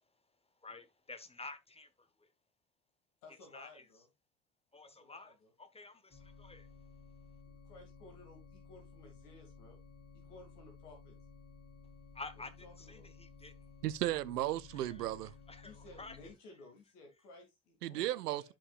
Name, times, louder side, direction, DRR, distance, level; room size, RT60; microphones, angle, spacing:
voice 1, 0.6-2.3 3.5-3.8 4.7-6.7 12.1-13.7 14.7-15.0 15.5-16.2, left 3 dB, 10° left, 1.3 m, -50 dB
voice 2, 3.2-4.1 4.8-5.5 7.5-9.8 10.1-11.1 12.6-13.1 15.6-18.5, left 2 dB, 75° left, 2.7 m, -57 dB
sound 1, 6.1-16.3, left 5 dB, 35° left, 4.0 m, -56 dB
voice 3, 13.8-15.3 17.8-18.5, right 14 dB, 75° right, 0.7 m, -35 dB
11.5 x 5.5 x 2.4 m
figure-of-eight pair, 65°, 47 cm